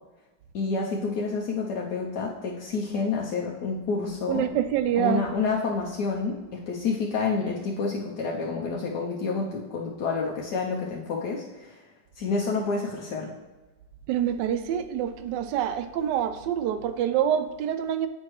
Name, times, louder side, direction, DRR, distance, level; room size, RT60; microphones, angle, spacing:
voice 1, 0.5-4.4 5.0-11.8 12.1-13.3, left 4 dB, 75° left, -2 dB, 1.2 m, -29 dB
voice 2, 4.3-5.2 14.1-18.1, right 10 dB, 80° right, 9 dB, 1.2 m, -26 dB
8.5 x 4.5 x 3.0 m, 1.2 s
omnidirectional pair, 1.9 m